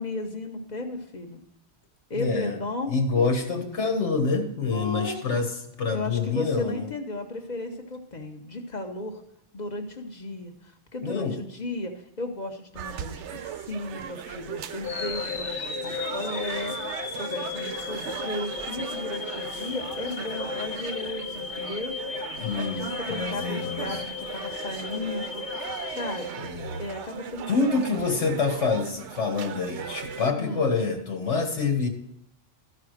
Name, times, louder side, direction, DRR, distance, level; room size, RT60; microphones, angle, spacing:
voice 1, 0.0-1.4 2.1-3.3 4.7-5.4 5.9-9.2 9.5-16.9 17.2-21.9 22.6-25.4 25.9-26.5 26.8-28.4 30.4-30.7, left 2 dB, 40° left, 4 dB, 1.2 m, -35 dB
voice 2, 2.1-2.6 2.9-5.5 5.8-6.9 11.0-11.4 14.3-14.4 22.3-24.0 26.4-26.8 27.5-31.9, left 4 dB, 75° left, 3 dB, 1.8 m, -27 dB
sound 1, 12.7-30.3, right 9 dB, 80° right, 0.9 m, -38 dB
sound 2, 14.8-27.0, left 7 dB, 60° left, 0.9 m, -35 dB
13.0 x 4.9 x 6.4 m, 0.79 s
omnidirectional pair, 1.2 m